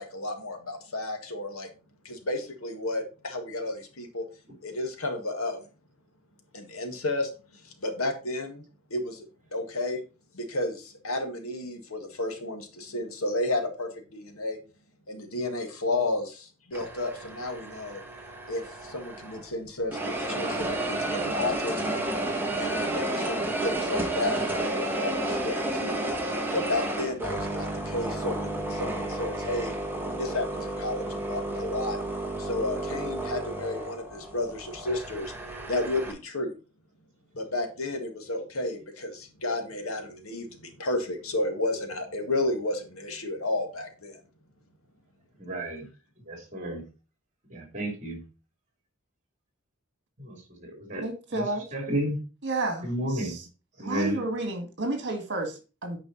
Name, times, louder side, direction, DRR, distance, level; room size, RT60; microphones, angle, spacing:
voice 1, 0.0-1.7 2.1-4.2 4.6-5.6 6.5-7.3 7.6-8.6 8.9-9.3 9.5-10.0 10.3-14.6 15.1-18.0 18.5-22.0 22.6-26.1 26.5-29.7 30.1-32.0 32.4-35.3 35.7-36.5 37.3-44.2, left 2 dB, 85° left, 5 dB, 1.8 m, -32 dB
sound 1, 16.7-19.5 19.9-36.1, right 1 dB, 10° right, 1.3 m, -32 dB
voice 2, 45.4-45.8 46.3-46.8 47.5-48.2 50.9-51.0 51.3-51.4 51.7-52.2 52.8-53.4 53.8-54.2, right 1 dB, 35° right, 3 dB, 3.1 m, -31 dB
voice 3, 51.0-51.7 52.4-53.5 53.8-56.0, right 2 dB, 55° right, 5 dB, 2.0 m, -31 dB
8.9 x 5.1 x 4.1 m, 0.33 s
head